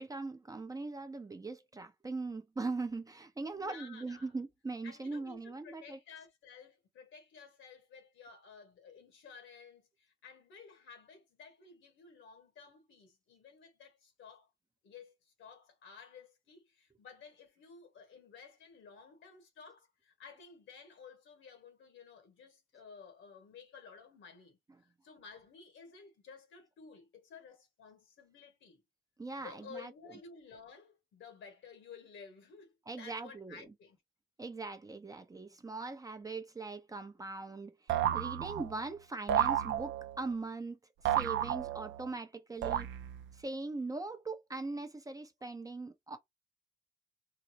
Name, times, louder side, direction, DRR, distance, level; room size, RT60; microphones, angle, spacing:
voice 1, 0.0-6.0 29.2-29.9 32.9-33.6 34.4-40.8 41.0-42.9 43.3-46.2, right 3 dB, 15° right, 0.6 m, -41 dB
voice 2, 3.5-4.3 4.8-14.5 14.8-28.8 29.4-34.0, left 5 dB, 75° left, 1.6 m, -54 dB
sound 1, 37.9-38.8 39.3-40.2 41.1-42.1 42.6-43.3, right 10 dB, 70° right, 0.5 m, -32 dB
3.9 x 2.0 x 2.8 m
cardioid pair, 90°, 20 cm